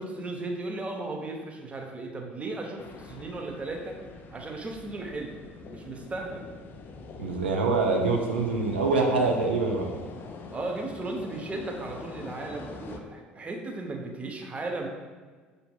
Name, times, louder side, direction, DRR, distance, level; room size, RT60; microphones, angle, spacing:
voice 1, 0.0-4.0 4.3-5.3 5.6-6.4 10.5-14.9, right 2 dB, 20° right, 2 dB, 0.6 m, -36 dB
sound 1, 2.8-13.0, left 4 dB, 35° left, 0.4 m, -44 dB
voice 2, 7.2-10.0, right 3 dB, 75° right, 0 dB, 0.4 m, -25 dB
6.5 x 2.7 x 2.2 m, 1.4 s
figure-of-eight pair, 60°, 6 cm